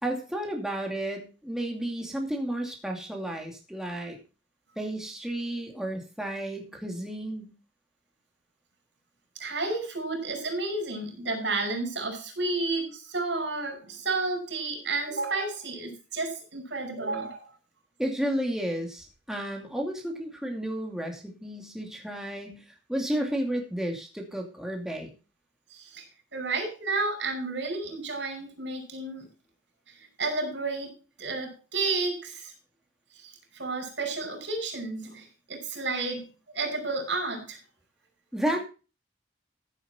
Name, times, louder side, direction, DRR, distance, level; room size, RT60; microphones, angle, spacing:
voice 1, 0.0-4.2 4.8-7.5 18.0-22.6 22.9-25.1 38.3-38.6, right 1 dB, 5° right, 1 dB, 2.5 m, -32 dB
voice 2, 9.4-17.4 25.7-26.0 26.3-29.3 29.9-32.5 33.1-36.3 36.5-37.6, right 3 dB, 85° right, 5 dB, 6.0 m, -31 dB
15.0 x 7.9 x 4.3 m, 0.33 s
head